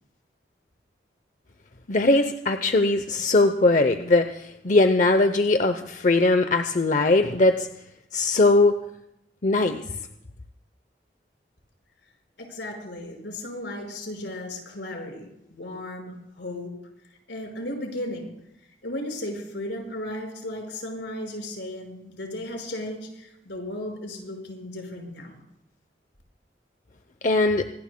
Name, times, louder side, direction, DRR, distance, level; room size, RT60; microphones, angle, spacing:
voice 1, 1.9-7.7 8.1-8.8 9.4-9.8 27.2-27.7, left 2 dB, 45° left, 8 dB, 0.7 m, -20 dB
voice 2, 12.4-16.7 17.3-18.3 18.8-25.4, left 1 dB, 80° left, 1 dB, 5.4 m, -35 dB
25.0 x 19.0 x 2.2 m, 0.82 s
head